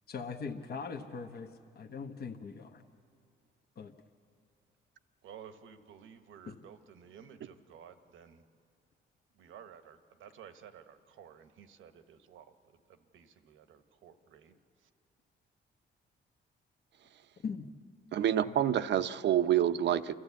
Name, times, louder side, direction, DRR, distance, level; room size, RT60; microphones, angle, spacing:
voice 1, 0.1-2.8 3.8-3.9 6.4-6.6 17.4-17.7 18.4-18.6, left 5 dB, 55° left, 4 dB, 1.1 m, -41 dB
voice 2, 5.2-8.4 9.3-12.5 12.9-14.9, right 8 dB, 80° right, 9 dB, 1.2 m, -54 dB
voice 3, 18.1-20.1, right 10 dB, 60° right, 12 dB, 0.7 m, -27 dB
29.5 x 12.5 x 8.3 m, 2.3 s
cardioid pair, 90°, 20 cm